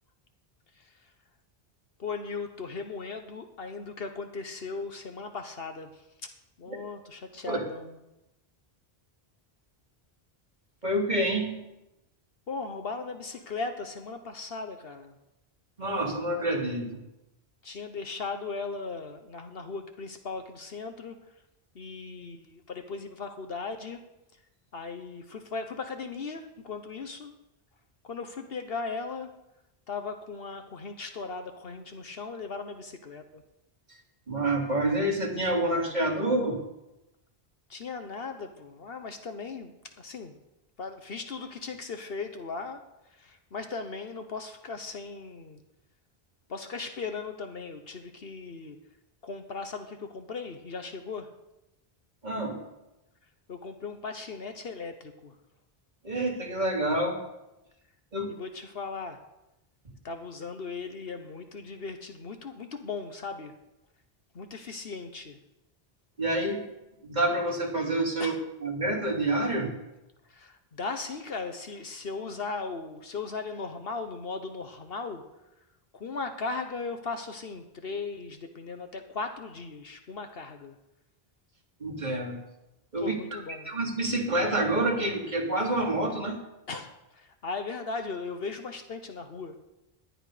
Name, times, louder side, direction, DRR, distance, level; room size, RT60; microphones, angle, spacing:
voice 1, 0.7-1.1 2.0-6.3 6.6-8.0 12.5-15.1 17.6-21.3 21.7-24.0 24.7-27.3 28.0-29.3 29.9-33.4 37.7-40.4 40.8-45.6 46.5-48.8 49.2-51.3 53.5-55.4 58.3-59.2 60.0-63.6 64.3-65.4 68.2-68.4 70.2-75.2 75.9-80.7 83.0-83.7 86.7-89.6, left 4 dB, 70° left, 7 dB, 1.3 m, -37 dB
voice 2, 10.8-11.6 15.8-17.0 34.3-36.6 52.2-52.6 56.0-57.2 58.1-58.3 66.2-66.6 67.0-68.3 68.6-69.8 81.8-82.4 82.9-83.4 83.6-86.4, right 1 dB, 45° right, -2 dB, 3.3 m, -28 dB
18.5 x 11.5 x 5.0 m, 0.93 s
omnidirectional pair, 1.0 m